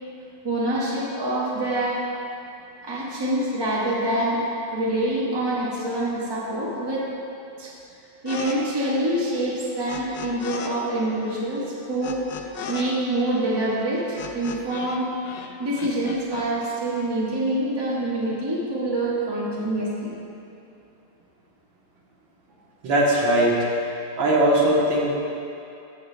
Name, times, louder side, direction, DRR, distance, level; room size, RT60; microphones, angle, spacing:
voice 1, 0.4-2.0 2.8-4.4 4.7-7.0 7.6-7.7 8.2-12.2 12.7-15.1 15.6-20.1, right 1 dB, 15° right, -7 dB, 1.2 m, -26 dB
sound 1, 8.3-8.6 8.8-10.7 11.0-15.0 15.2-16.4, left 6 dB, 85° left, 1.4 m, -37 dB
voice 2, 22.8-23.6 24.2-25.2, right 1 dB, 80° right, -4 dB, 1.9 m, -19 dB
14.0 x 6.7 x 2.2 m, 2.7 s
omnidirectional pair, 2.0 m